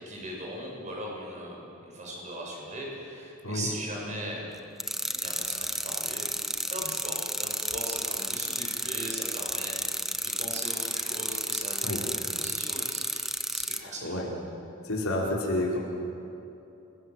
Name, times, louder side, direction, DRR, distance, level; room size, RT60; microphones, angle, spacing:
voice 1, 0.0-4.5 5.0-14.2, right 1 dB, 35° right, -2 dB, 7.6 m, -39 dB
sound 1, 4.8-13.8, right 1 dB, ahead, 0.9 m, -32 dB
voice 2, 13.8-14.3 14.8-15.8, left 1 dB, 85° left, -3 dB, 5.2 m, -29 dB
30.0 x 21.0 x 7.8 m, 2.9 s
head